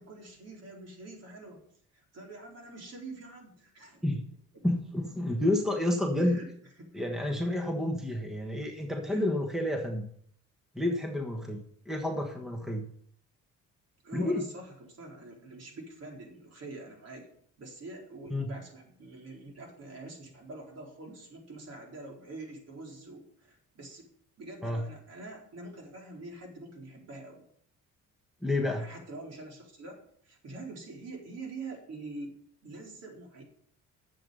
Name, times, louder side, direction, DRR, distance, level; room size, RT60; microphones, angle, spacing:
voice 1, 0.0-1.6 1.9-4.1 6.2-6.5 6.8-7.0 9.1-9.2 14.0-17.3 17.6-24.1 24.4-27.4 28.7-32.3 32.6-33.4, right 2 dB, 50° right, 0 dB, 4.2 m, -45 dB
voice 2, 4.6-6.4 6.9-10.1 10.7-12.9 14.1-14.5 18.3-18.5 24.6-24.9 28.4-28.9, left 1 dB, ahead, 3 dB, 1.3 m, -30 dB
11.5 x 7.8 x 5.5 m, 0.62 s
cardioid pair, 125°, 32 cm